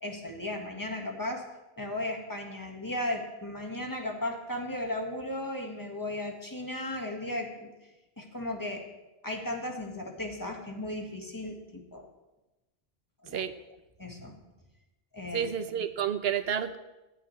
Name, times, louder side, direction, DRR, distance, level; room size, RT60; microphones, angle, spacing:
voice 1, 0.0-1.5 1.8-7.7 8.2-8.8 9.2-12.1 13.2-13.4 14.0-14.4 15.1-15.5, left 1 dB, 20° left, 2 dB, 1.5 m, -35 dB
voice 2, 15.3-16.8, right 8 dB, 75° right, 11 dB, 1.0 m, -30 dB
18.0 x 11.0 x 3.2 m, 1.0 s
omnidirectional pair, 1.1 m